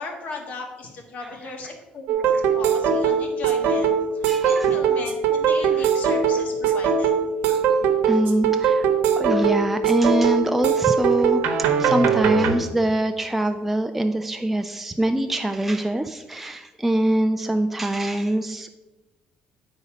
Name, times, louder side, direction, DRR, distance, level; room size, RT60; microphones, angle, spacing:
voice 1, 0.0-7.1, left 3 dB, 55° left, 2 dB, 1.6 m, -37 dB
sound 1, 2.1-12.5, right 6 dB, 90° right, 0.9 m, -20 dB
voice 2, 4.3-4.7 5.8-5.9 7.5-18.7, right 1 dB, 5° right, 7 dB, 0.3 m, -24 dB
10.5 x 4.1 x 5.0 m, 1.1 s
cardioid pair, 140°, 3 cm